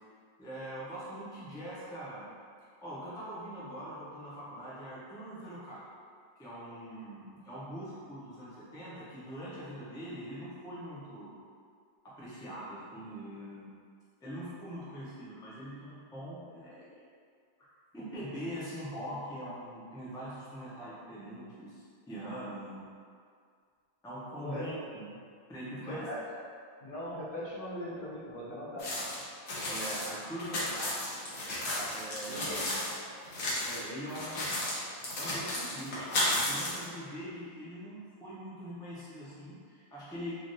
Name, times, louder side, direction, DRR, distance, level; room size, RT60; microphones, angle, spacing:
voice 1, 0.4-2.3 2.8-5.9 6.4-11.4 12.0-13.7 14.2-17.0 17.9-22.9 24.0-25.1 25.5-26.1 29.7-31.0 31.9-32.7 33.6-34.6 35.2-40.3, equal, 5° left, -9 dB, 0.4 m, -42 dB
voice 2, 25.8-26.2 26.8-28.9 31.8-31.9 32.3-32.9, equal, 55° left, -8 dB, 0.8 m, -40 dB
sound 1, 28.8-32.9 33.3-33.8 34.1-36.8, left 1 dB, 75° left, 1.0 m, -33 dB
3.3 x 2.4 x 2.6 m, 2.2 s
omnidirectional pair, 1.2 m